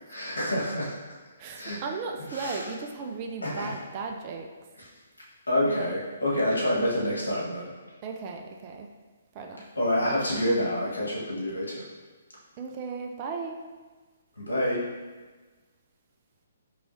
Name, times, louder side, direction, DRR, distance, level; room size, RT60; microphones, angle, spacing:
voice 1, 0.1-0.9 1.6-1.8 2.3-2.7 3.4-3.8 4.8-4.9 5.5-7.7 9.7-11.8 14.4-14.8, left 1 dB, 85° left, -6 dB, 1.3 m, -27 dB
voice 2, 1.4-4.5 5.7-6.0 8.0-8.9 9.3-9.6 12.6-13.6, right 4 dB, 35° right, 2 dB, 0.4 m, -36 dB
4.6 x 3.1 x 2.6 m, 1.3 s
figure-of-eight pair, 135°, 0 cm